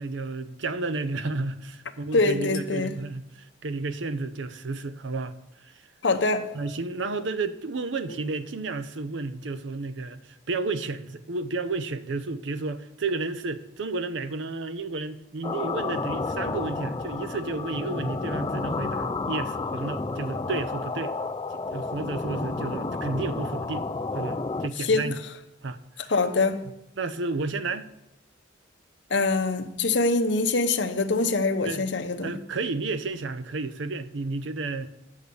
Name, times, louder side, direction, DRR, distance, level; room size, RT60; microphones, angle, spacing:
voice 1, 0.0-5.3 6.5-10.2 10.5-21.2 21.7-23.9 24.1-25.2 25.6-26.1 27.0-27.9 31.6-31.9 32.2-34.9, right 3 dB, 70° right, 0.6 m, -32 dB
voice 2, 2.1-2.9 6.0-6.5 8.1-8.2 24.8-25.2 26.1-26.6 29.1-32.3, left 3 dB, 65° left, 0.8 m, -24 dB
sound 1, 15.4-24.7, left 3 dB, 20° left, 0.3 m, -31 dB
9.9 x 6.5 x 6.9 m
head